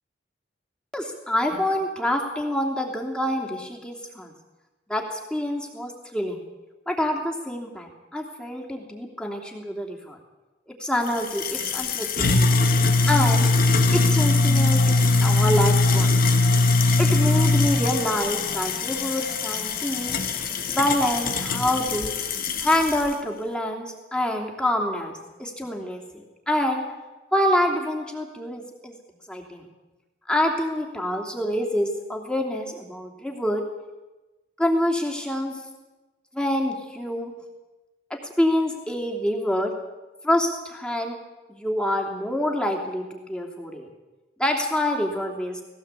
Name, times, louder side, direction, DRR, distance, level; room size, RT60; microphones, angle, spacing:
voice 1, 0.9-4.3 4.9-6.4 6.9-10.2 10.8-12.1 12.4-13.5 13.9-16.1 17.0-20.2 20.7-22.1 22.6-26.8 27.3-28.9 29.3-29.6 30.3-33.6 34.6-35.5 36.3-37.3 38.1-39.7 40.2-41.2 41.5-43.9 44.4-45.6, left 1 dB, 5° left, 1 dB, 3.0 m, -26 dB
sound 1, 11.1-23.1, left 3 dB, 50° left, 2.0 m, -21 dB
18.0 x 17.0 x 8.3 m, 1.1 s
head